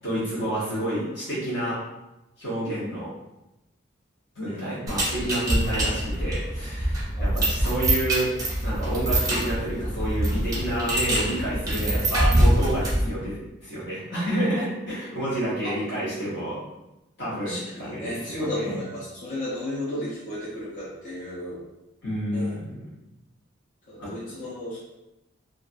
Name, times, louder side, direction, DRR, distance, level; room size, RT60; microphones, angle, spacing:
voice 1, 0.0-1.8 2.4-3.1 4.3-8.3 8.6-13.4 13.6-16.6 17.2-18.8 22.0-22.7 24.0-24.1, right 1 dB, 65° left, -10 dB, 1.0 m, -29 dB
sound 1, 4.9-13.1, right 1 dB, 20° right, 0.5 m, -24 dB
voice 2, 17.4-21.6 22.3-22.6 23.9-24.8, left 1 dB, 40° left, -9 dB, 0.6 m, -34 dB
2.5 x 2.3 x 2.5 m, 0.93 s
head